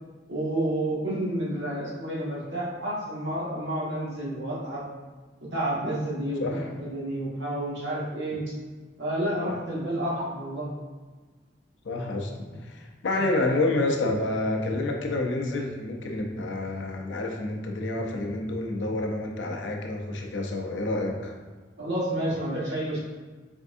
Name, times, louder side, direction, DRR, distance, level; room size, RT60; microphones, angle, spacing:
voice 1, 0.3-4.8 5.5-8.4 9.0-10.7 21.8-23.0, right 1 dB, 75° right, -7 dB, 1.4 m, -30 dB
voice 2, 11.8-21.4, left 2 dB, 90° left, 1 dB, 0.6 m, -29 dB
4.5 x 3.5 x 2.6 m, 1.4 s
head